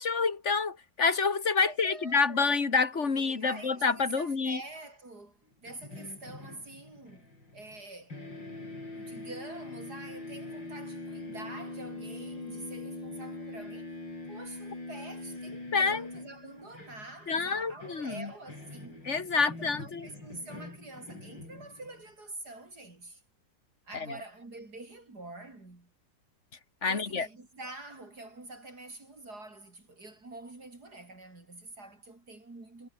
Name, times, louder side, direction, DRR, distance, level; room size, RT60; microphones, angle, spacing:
voice 1, 0.0-4.6 15.7-16.1 17.3-18.3 19.1-20.1 23.9-24.1 26.8-27.3, left 4 dB, 40° left, 2.4 m, -28 dB
voice 2, 1.6-2.6 2.9-8.2 8.9-13.9 14.3-23.2 23.9-25.9 26.8-32.9, right 2 dB, 55° right, 5.6 m, -46 dB
sound 1, 5.6-7.8 8.1-22.1, left 2 dB, 80° left, 8.5 m, -43 dB
omnidirectional pair, 2.0 m